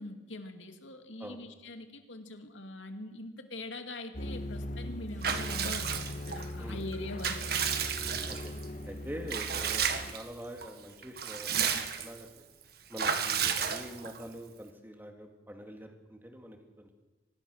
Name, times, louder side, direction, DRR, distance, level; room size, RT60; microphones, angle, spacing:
voice 1, 0.0-7.7, left 2 dB, 80° left, 6 dB, 2.5 m, -43 dB
sound 1, 4.1-10.1, left 1 dB, 40° left, 1.5 m, -40 dB
Water / Bathtub (filling or washing) / Liquid, 5.2-6.5 6.9-8.6 9.3-10.2 10.6-10.7 11.0-12.2 13.0-14.2, right 7 dB, 50° right, 1.7 m, -32 dB
voice 2, 8.9-12.4 12.9-16.9, equal, 10° right, 3 dB, 2.5 m, -45 dB
24.5 x 19.5 x 6.6 m, 1.1 s
head